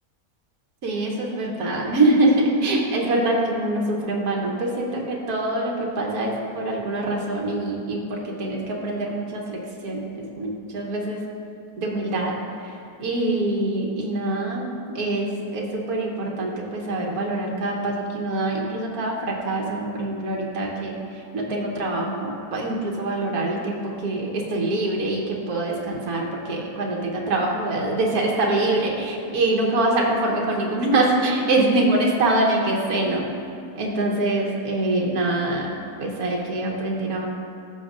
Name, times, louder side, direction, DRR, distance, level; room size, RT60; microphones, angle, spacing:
voice 1, 0.8-11.2 11.8-12.3 12.6-12.7 13.0-21.0 21.3-33.3 33.8-35.7 36.0-37.3, right 2 dB, 80° right, -1 dB, 1.5 m, -24 dB
15.0 x 6.3 x 2.5 m, 2.5 s
omnidirectional pair, 1.6 m